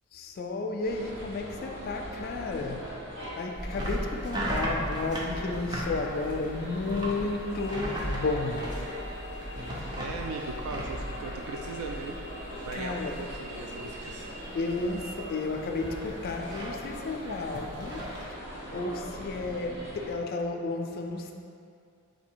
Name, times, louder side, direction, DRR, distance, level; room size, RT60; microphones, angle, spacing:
voice 1, 0.1-3.0 3.4-8.8 12.7-13.2 14.5-21.3, left 3 dB, 45° left, 2 dB, 0.3 m, -33 dB
sound 1, 0.8-20.1, equal, 55° right, 1.2 m, -41 dB
sound 2, 3.5-13.7 13.9-14.4 14.7-18.3, equal, 20° right, 0.5 m, -37 dB
voice 2, 10.0-12.2 12.6-14.3, right 3 dB, 85° right, 4 dB, 0.3 m, -38 dB
4.0 x 2.7 x 4.5 m, 2.4 s
head